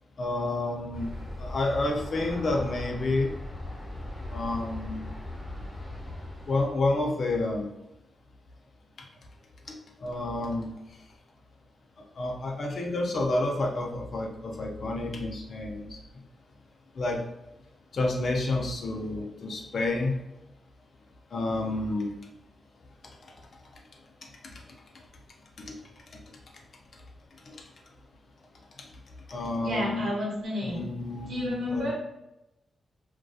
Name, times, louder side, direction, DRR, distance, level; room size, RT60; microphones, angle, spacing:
voice 1, 0.2-1.1 1.4-3.3 4.3-5.1 6.5-7.7 9.7-10.7 12.2-16.0 16.9-17.2 17.9-20.2 21.3-22.1 25.7-25.8 27.5-27.6 29.3-30.1 30.6-31.9, left 2 dB, 50° left, 1 dB, 0.4 m, -29 dB
Aircraft, 0.9-6.7, left 1 dB, 10° left, 0.8 m, -39 dB
voice 2, 29.6-30.8 31.3-31.9, left 1 dB, 70° right, -4 dB, 0.9 m, -30 dB
2.6 x 2.2 x 2.3 m, 0.90 s
wide cardioid pair, 125°, 0 cm